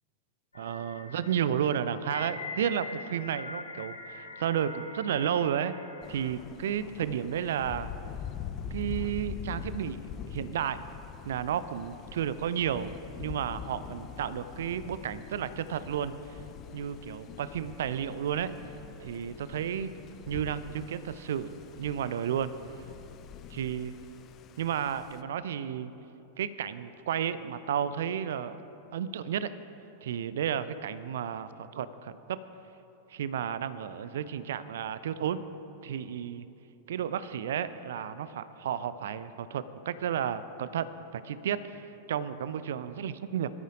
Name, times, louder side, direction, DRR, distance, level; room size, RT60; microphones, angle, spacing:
sound 1, 0.5-6.3, left 2 dB, 80° left, 0.9 m, -43 dB
voice 1, 0.5-5.7 6.1-7.9 8.7-10.0 10.3-10.8 11.3-12.9 13.2-16.1 16.7-18.5 19.0-19.9 20.3-21.5 21.8-22.5 23.5-23.9 24.6-25.9 26.4-28.6 28.9-29.5 30.0-32.4 33.1-35.4 35.8-36.5 36.9-43.5, right 9 dB, 60° right, 14 dB, 0.5 m, -32 dB
Thunder, 6.0-25.2, left 8 dB, 35° left, 0.6 m, -44 dB
22.0 x 13.5 x 2.6 m, 2.9 s
figure-of-eight pair, 90°, 0 cm